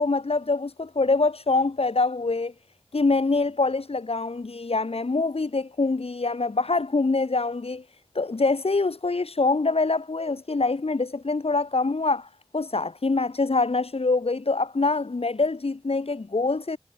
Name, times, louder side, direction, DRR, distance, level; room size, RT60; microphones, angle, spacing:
voice 1, 0.0-2.5 2.9-7.8 8.1-16.8, left 3 dB, 75° left, 8.0 m, -25 dB
wide cardioid pair, 65°, 10 cm